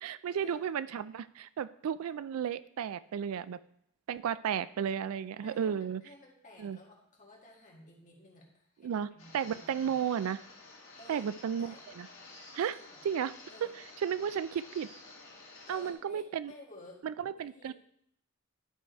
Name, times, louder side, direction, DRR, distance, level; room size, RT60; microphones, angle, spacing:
voice 1, 0.0-3.6 4.1-6.0 6.6-6.8 8.8-9.1 9.3-10.4 11.1-12.1 12.5-12.8 13.0-13.3 14.0-14.9 15.7-16.5 17.0-17.7, right 8 dB, 75° right, 15 dB, 0.3 m, -33 dB
voice 2, 5.4-10.0 11.0-11.3 11.6-11.8 12.5-13.0 13.5-13.7 15.7-17.0 17.4-17.7, left 1 dB, 35° left, -2 dB, 1.8 m, -55 dB
sound 1, 9.2-15.9, left 3 dB, 60° left, 1.7 m, -52 dB
11.0 x 4.8 x 4.5 m, 0.72 s
head